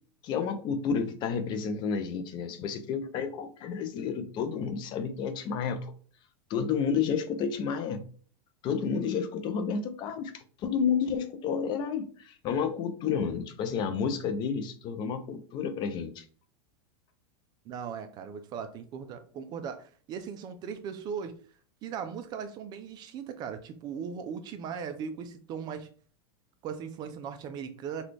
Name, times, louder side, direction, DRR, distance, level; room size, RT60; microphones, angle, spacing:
voice 1, 0.2-5.9 6.5-8.0 8.6-16.2, left 6 dB, 30° left, 9 dB, 0.4 m, -31 dB
voice 2, 17.7-21.3 21.8-25.9 26.6-28.0, right 7 dB, 30° right, 9 dB, 0.3 m, -38 dB
4.0 x 2.3 x 3.2 m, 0.43 s
supercardioid pair, 145°, 14 cm